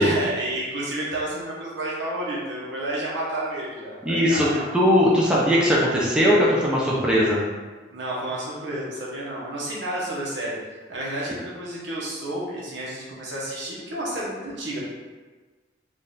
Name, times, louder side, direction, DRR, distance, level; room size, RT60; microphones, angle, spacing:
voice 1, 0.0-4.7 7.9-10.6 10.9-14.8, right 1 dB, 80° right, -5 dB, 1.1 m, -30 dB
voice 2, 4.1-4.5 4.7-7.4, equal, 5° right, -6 dB, 0.5 m, -19 dB
3.9 x 2.5 x 3.9 m, 1.3 s
head